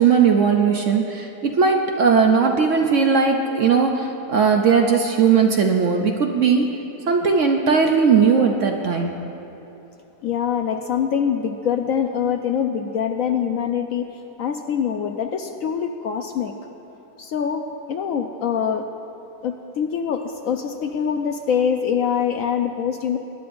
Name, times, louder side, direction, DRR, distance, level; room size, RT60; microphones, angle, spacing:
voice 1, 0.0-6.7 7.1-9.2, right 6 dB, 60° right, 3 dB, 0.8 m, -18 dB
voice 2, 10.2-14.1 14.4-16.5 17.2-18.8 19.4-23.2, left 7 dB, 70° left, 5 dB, 0.8 m, -24 dB
22.0 x 10.0 x 2.6 m, 2.9 s
omnidirectional pair, 1.8 m